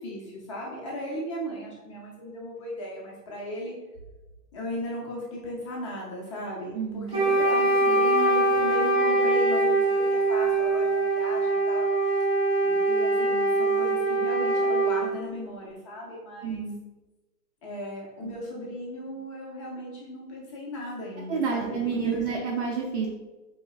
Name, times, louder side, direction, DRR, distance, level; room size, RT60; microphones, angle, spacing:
voice 1, 0.0-3.7 4.5-11.8 12.6-16.6 17.6-21.8 22.0-22.2, left 1 dB, 20° left, -4 dB, 0.5 m, -36 dB
voice 2, 6.7-7.3 16.4-16.8 18.2-18.3 21.3-23.1, right 5 dB, 45° right, -4 dB, 0.6 m, -29 dB
Wind instrument woodwind instrument, 7.1-15.1, right 2 dB, 10° right, 0.8 m, -23 dB
4.4 x 3.1 x 2.3 m, 1.1 s
hypercardioid pair, 155°, 48 cm